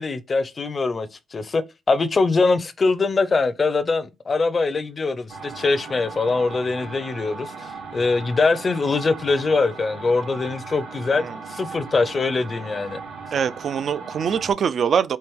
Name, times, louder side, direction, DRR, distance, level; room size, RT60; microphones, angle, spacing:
voice 1, 0.0-1.6 1.9-13.0, left 3 dB, 30° left, 0.5 m, -23 dB
sound 1, 5.3-14.5, right 4 dB, 85° right, 1.9 m, -37 dB
voice 2, 13.3-15.2, right 7 dB, 50° right, 0.4 m, -23 dB
4.5 x 2.9 x 3.5 m
cardioid pair, 115°, 0 cm